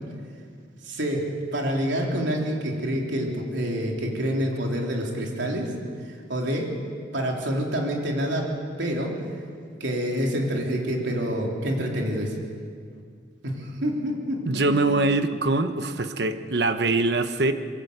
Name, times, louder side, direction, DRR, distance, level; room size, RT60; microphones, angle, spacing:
voice 1, 0.8-5.7 6.0-6.7 7.1-8.5 8.8-9.1 9.8-12.4 13.4-15.0, equal, 75° right, 0 dB, 3.5 m, -27 dB
voice 2, 14.4-17.5, right 2 dB, 60° right, 9 dB, 1.1 m, -23 dB
23.5 x 14.0 x 8.1 m, 2.1 s
head